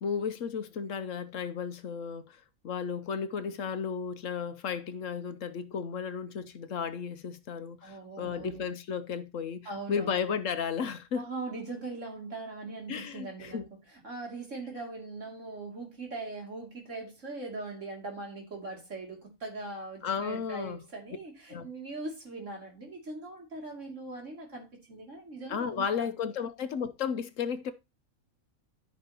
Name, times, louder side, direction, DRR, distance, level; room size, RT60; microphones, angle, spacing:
voice 1, 0.0-11.2 12.9-13.7 20.0-20.8 21.5-21.7 25.5-27.7, left 6 dB, 70° left, 1.1 m, -34 dB
voice 2, 7.8-8.7 9.6-10.2 11.1-26.1, right 3 dB, 60° right, 3.1 m, -41 dB
14.0 x 5.0 x 2.9 m
omnidirectional pair, 1.5 m